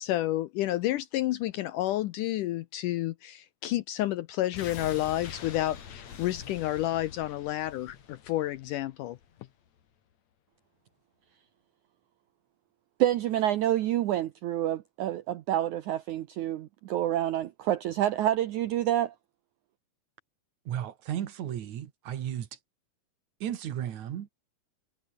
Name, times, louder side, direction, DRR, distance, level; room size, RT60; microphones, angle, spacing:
voice 1, 0.0-9.2, left 14 dB, 80° left, 1.9 m, -30 dB
sound 1, 4.5-9.5 9.8-9.9, left 8 dB, 50° left, 3.3 m, -45 dB
voice 2, 13.0-19.1, right 12 dB, 75° right, 1.8 m, -28 dB
voice 3, 20.7-22.6 23.4-24.3, right 10 dB, 60° right, 2.4 m, -34 dB
omnidirectional pair, 4.5 m